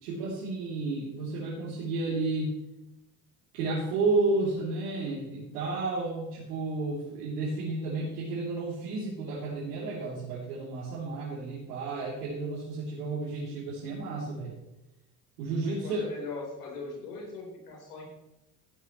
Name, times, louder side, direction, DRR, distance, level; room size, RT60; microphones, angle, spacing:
voice 1, 0.0-2.6 3.5-14.6 15.4-16.1, right 3 dB, 80° right, -7 dB, 3.5 m, -32 dB
voice 2, 15.6-18.0, left 3 dB, 90° left, -1 dB, 4.5 m, -40 dB
14.5 x 11.0 x 3.2 m, 0.94 s
hypercardioid pair, 75°, 45 cm